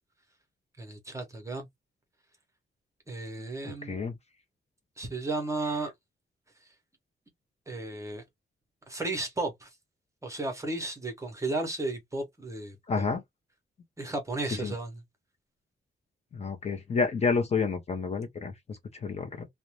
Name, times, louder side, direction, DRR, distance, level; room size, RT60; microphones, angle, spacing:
voice 1, 0.8-1.7 3.1-4.0 5.0-5.9 7.7-8.2 8.9-9.7 10.2-13.0 14.0-15.0, right 2 dB, 15° right, 0.8 m, -34 dB
voice 2, 3.8-4.1 12.9-13.2 14.6-14.7 16.3-19.5, left 4 dB, 35° left, 0.6 m, -29 dB
2.5 x 2.1 x 2.9 m
wide cardioid pair, 135°, 19 cm